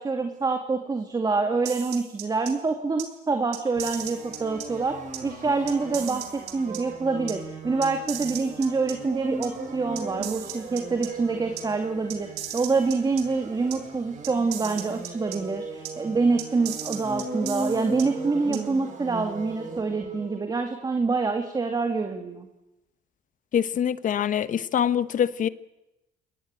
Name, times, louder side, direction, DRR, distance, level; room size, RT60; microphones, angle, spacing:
voice 1, 0.0-5.0 5.2-12.3 12.5-22.5, right 4 dB, 25° right, 2.3 m, -26 dB
sound 1, 1.6-2.5 3.0-3.1 3.5-4.7 5.1-5.2 5.7-6.8 7.3-7.4 7.8-8.9 9.4-9.5 10.0-11.1 11.6-11.7 12.1-13.2 13.7-13.8 14.2-15.4 15.8-15.9 16.4-18.0 18.5-18.6, right 11 dB, 85° right, 3.7 m, -36 dB
sound 2, 3.8-20.4, right 3 dB, 45° right, 7.8 m, -37 dB
voice 2, 23.5-25.5, left 9 dB, 50° left, 1.2 m, -24 dB
24.5 x 20.5 x 9.0 m
cardioid pair, 110°, 17 cm